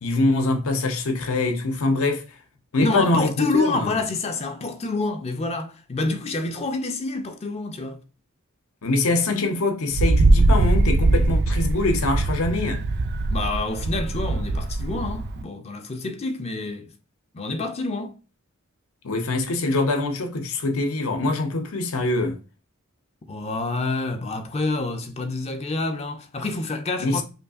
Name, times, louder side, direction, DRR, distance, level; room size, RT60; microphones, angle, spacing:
voice 1, 0.0-2.2 2.7-4.0 8.8-12.8 19.0-22.4 27.0-27.2, left 2 dB, 70° left, 0.6 m, -24 dB
voice 2, 2.8-8.0 13.3-16.9 17.3-18.1 23.3-27.2, left 3 dB, 30° left, 0.4 m, -27 dB
Wind, 9.9-15.4, right 2 dB, 50° right, 0.3 m, -21 dB
5.2 x 2.4 x 2.4 m
head